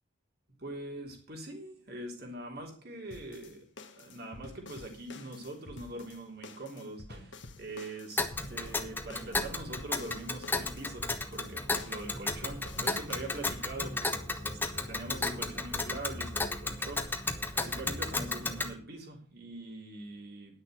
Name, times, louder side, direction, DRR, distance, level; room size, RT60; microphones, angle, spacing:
voice 1, 0.6-3.6 3.9-20.6, right 2 dB, 55° right, 1 dB, 3.4 m, -43 dB
sound 1, 3.1-13.8, left 2 dB, 70° left, 1.4 m, -50 dB
Tick, 8.2-18.7, left 2 dB, 10° left, 1.1 m, -34 dB
10.5 x 6.6 x 7.7 m, 0.43 s
head